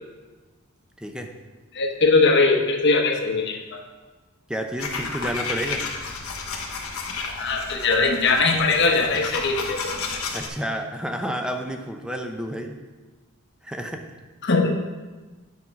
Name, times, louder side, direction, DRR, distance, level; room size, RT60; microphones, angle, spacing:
voice 1, 1.0-1.3 4.5-5.9 10.3-12.7 13.6-14.1, equal, 5° right, 4 dB, 0.7 m, -30 dB
voice 2, 1.7-3.8 7.4-10.0 14.4-14.8, left 3 dB, 55° left, 3 dB, 1.1 m, -21 dB
sound 1, 4.8-10.5, left 4 dB, 80° left, 1.2 m, -32 dB
8.7 x 5.4 x 5.9 m, 1.3 s
head